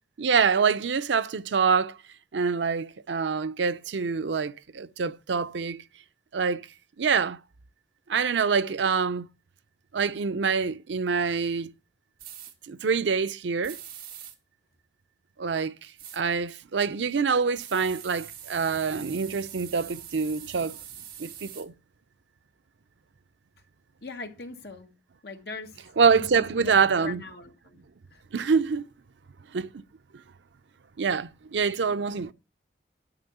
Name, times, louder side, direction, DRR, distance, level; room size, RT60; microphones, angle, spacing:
voice 1, 0.2-2.0 2.3-5.8 6.3-6.6 7.0-7.4 8.1-9.3 9.9-11.7 12.7-13.8 15.4-15.7 16.1-20.8 21.2-21.7 26.0-27.2 28.3-28.9 29.5-29.7 31.0-32.3, right 5 dB, 85° right, 0.5 m, -25 dB
sound 1, 12.2-12.5 13.6-14.3 16.0-16.2 17.5-21.6, right 10 dB, 55° right, 1.8 m, -43 dB
voice 2, 24.0-24.9 25.2-25.7 26.1-27.8 28.1-28.2, left 3 dB, 60° left, 1.5 m, -41 dB
11.5 x 5.3 x 6.8 m
head